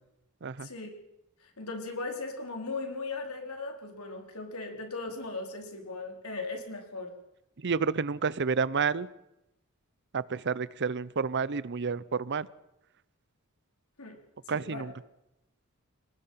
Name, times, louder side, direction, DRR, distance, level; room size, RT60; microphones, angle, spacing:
voice 1, 1.4-7.1 14.0-14.2 14.5-14.9, left 3 dB, 85° left, 3 dB, 4.2 m, -38 dB
voice 2, 7.6-9.1 10.1-12.5 14.5-14.9, right 5 dB, 55° right, 19 dB, 0.7 m, -30 dB
30.0 x 19.0 x 5.7 m, 0.90 s
head